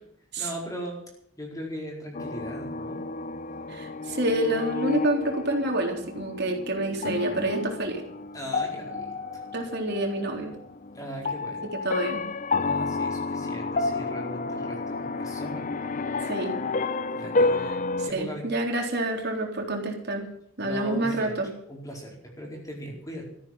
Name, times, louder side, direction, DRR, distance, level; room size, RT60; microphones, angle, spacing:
voice 1, 0.4-1.0 1.4-3.0 8.3-9.4 10.9-11.6 12.6-15.9 17.2-17.7 18.0-18.5 20.6-21.4 21.6-23.2, equal, 15° left, -1 dB, 4.5 m, -38 dB
sound 1, 2.1-18.1, left 3 dB, 40° left, 0.7 m, -31 dB
voice 2, 3.7-8.0 9.5-10.6 11.8-12.2 16.2-16.6 18.1-20.3 20.6-21.5, right 1 dB, 50° right, 2 dB, 3.7 m, -28 dB
14.0 x 9.9 x 7.9 m, 0.72 s
head